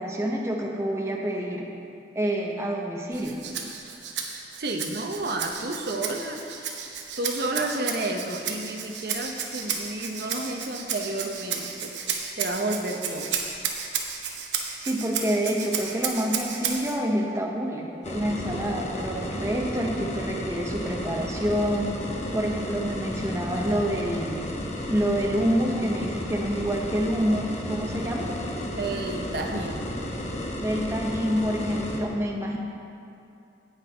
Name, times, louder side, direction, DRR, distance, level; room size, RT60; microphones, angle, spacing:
voice 1, 0.0-1.7 2.1-3.4 14.8-22.0 22.3-24.5 24.9-28.3 30.6-32.6, equal, 15° right, 0 dB, 0.7 m, -27 dB
Rattle (instrument), 3.1-17.0, right 6 dB, 85° right, 0.9 m, -33 dB
voice 2, 4.6-6.8 7.2-11.9 12.4-13.4 28.7-29.9, right 2 dB, 60° right, 3 dB, 0.7 m, -31 dB
sound 1, 18.0-32.0, left 1 dB, 40° left, 0.9 m, -33 dB
17.0 x 6.0 x 3.3 m, 2.6 s
head